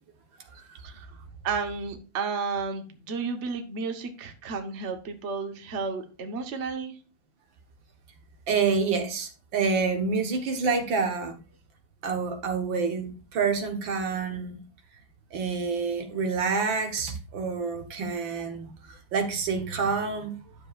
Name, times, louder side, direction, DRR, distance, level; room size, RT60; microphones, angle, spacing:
voice 1, 0.8-1.1 1.4-7.0, right 4 dB, 45° right, 1.3 m, -32 dB
voice 2, 8.5-11.4 12.0-14.6 15.3-20.5, right 5 dB, 85° right, 2.1 m, -28 dB
11.0 x 7.2 x 2.5 m
omnidirectional pair, 2.0 m